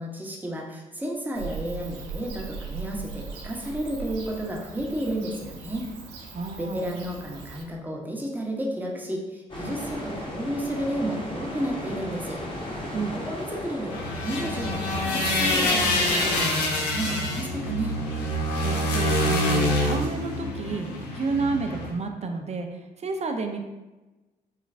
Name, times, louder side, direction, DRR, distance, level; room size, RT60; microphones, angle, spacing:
voice 1, 0.0-5.9 6.6-12.4 13.2-18.0, right 1 dB, 10° right, -1 dB, 0.9 m, -32 dB
Bird / Cricket, 1.3-7.6, right 5 dB, 75° right, 0.6 m, -39 dB
voice 2, 6.3-6.9 12.9-13.2 18.6-20.9 21.1-23.6, right 3 dB, 35° right, 5 dB, 0.5 m, -30 dB
sound 1, 9.5-16.5, left 1 dB, 25° left, 1.2 m, -36 dB
sound 2, 13.9-21.9, left 1 dB, 85° left, 0.5 m, -26 dB
3.8 x 3.2 x 2.5 m, 1.1 s
hypercardioid pair, 40°, 21 cm